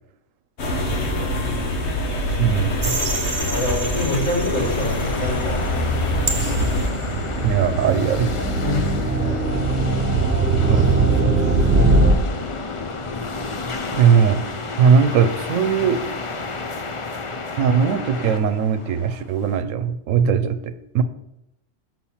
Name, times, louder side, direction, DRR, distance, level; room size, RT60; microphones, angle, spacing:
sound 1, 0.6-6.9, left 1 dB, 60° left, 1.3 m, -24 dB
voice 1, 1.1-1.6 3.4-5.8 8.6-9.6, left 1 dB, 80° left, -6 dB, 3.2 m, -27 dB
voice 2, 2.4-3.0 7.4-8.4 10.7-12.0 13.9-14.5 14.8-16.0 17.6-21.0, right 7 dB, 85° right, 11 dB, 1.0 m, -20 dB
sound 2, 2.8-5.1 6.0-12.1, right 2 dB, 45° right, 1.0 m, -21 dB
sound 3, 4.5-19.6, left 3 dB, 45° left, 0.4 m, -31 dB
7.0 x 6.0 x 4.3 m, 0.84 s
omnidirectional pair, 1.3 m